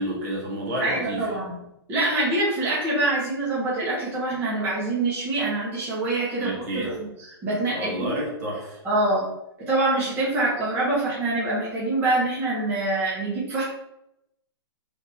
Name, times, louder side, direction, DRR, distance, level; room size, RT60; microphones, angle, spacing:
voice 1, 0.0-1.4 6.4-6.9 7.7-8.8, equal, 40° right, -3 dB, 1.3 m, -30 dB
voice 2, 0.8-1.6 1.9-8.2 8.8-9.2 9.7-13.6, right 2 dB, 15° right, -9 dB, 1.0 m, -25 dB
3.4 x 2.8 x 4.1 m, 0.83 s
hypercardioid pair, 165°, 14 cm